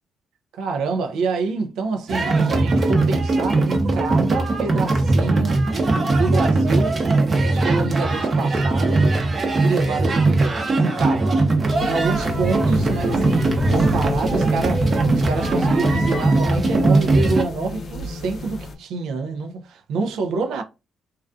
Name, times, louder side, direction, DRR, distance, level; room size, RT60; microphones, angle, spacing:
voice 1, 0.5-5.7 6.0-7.0 7.4-9.1 9.6-11.5 11.8-20.6, right 4 dB, 80° right, 0.3 m, -27 dB
sound 1, 2.1-17.4, right 2 dB, 40° right, 0.6 m, -20 dB
sound 2, 11.7-18.8, left 3 dB, 45° left, 0.5 m, -29 dB
2.3 x 2.3 x 2.4 m
cardioid pair, 90°, 0 cm